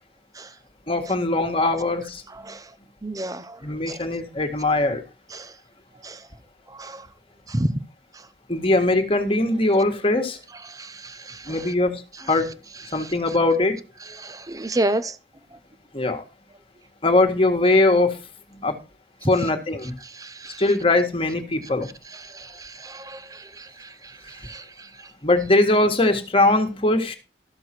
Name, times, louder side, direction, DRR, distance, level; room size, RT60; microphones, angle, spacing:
voice 1, 0.9-2.5 3.6-5.0 8.5-10.4 11.5-12.5 12.9-13.8 15.9-16.2 17.0-18.2 18.5-18.8 19.3-20.0 20.6-21.9 25.2-27.2, left 2 dB, 30° left, 1.8 m, -21 dB
voice 2, 3.0-3.6 3.9-4.0 5.3-5.5 6.0-6.2 6.8-7.0 7.5-7.7 10.7-11.7 14.2-15.2 19.2-19.3 20.0-20.6 22.1-24.6, right 1 dB, 20° right, 0.8 m, -30 dB
13.5 x 7.0 x 4.5 m
head